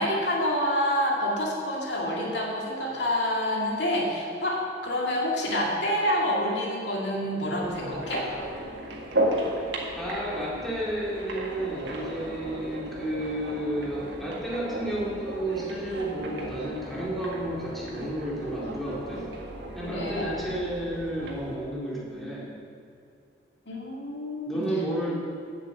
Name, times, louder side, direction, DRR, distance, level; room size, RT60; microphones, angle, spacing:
voice 1, 0.0-8.3 19.8-20.3 23.7-24.6, equal, 70° left, -2 dB, 2.1 m, -27 dB
sound 1, 7.6-21.6, right 1 dB, 75° right, 1.8 m, -35 dB
voice 2, 10.0-19.3 19.7-22.5 24.5-25.2, right 1 dB, ahead, -7 dB, 2.1 m, -32 dB
9.1 x 7.8 x 7.7 m, 2.5 s
head